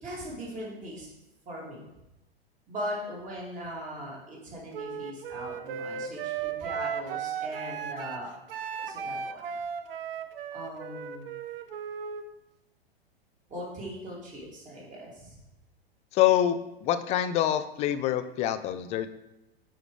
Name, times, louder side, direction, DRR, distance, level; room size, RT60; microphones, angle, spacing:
voice 1, 0.0-1.1 1.5-1.8 2.7-8.3 8.8-9.4 10.5-11.3 13.5-15.4, equal, 25° right, -4 dB, 2.8 m, -39 dB
Wind instrument woodwind instrument, 4.7-12.2, right 7 dB, 60° right, 0.7 m, -36 dB
voice 2, 16.1-19.1, left 11 dB, 20° left, 11 dB, 0.4 m, -26 dB
9.6 x 5.0 x 3.3 m, 0.91 s
figure-of-eight pair, 100°, 31 cm